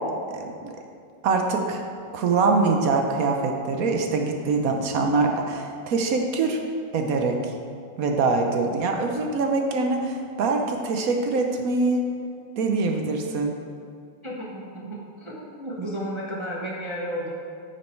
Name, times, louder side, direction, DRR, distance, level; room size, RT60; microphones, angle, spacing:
voice 1, 0.3-0.7 1.2-1.8 2.1-6.6 6.9-7.3 8.0-12.0 12.6-13.5, right 3 dB, 60° right, 3 dB, 0.9 m, -24 dB
voice 2, 14.2-17.4, equal, 30° right, -4 dB, 0.5 m, -33 dB
9.4 x 6.5 x 4.5 m, 2.3 s
omnidirectional pair, 2.3 m